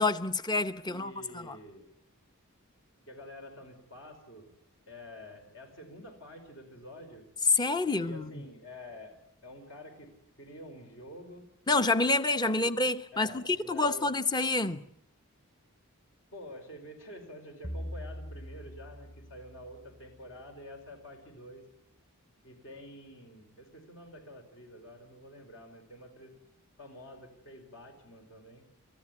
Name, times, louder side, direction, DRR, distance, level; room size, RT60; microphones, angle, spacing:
voice 1, 0.0-1.6 7.5-8.4 11.7-14.8, left 3 dB, 20° left, 0.9 m, -28 dB
voice 2, 0.8-1.9 3.1-4.5 4.9-7.3 7.8-9.1 9.4-10.1 10.4-11.5 12.5-12.7 13.1-14.0 16.3-21.6 22.4-26.3 26.8-28.6, left 1 dB, 60° left, 4.9 m, -48 dB
sound 1, 17.6-20.4, equal, 40° left, 4.2 m, -43 dB
30.0 x 14.5 x 9.8 m
head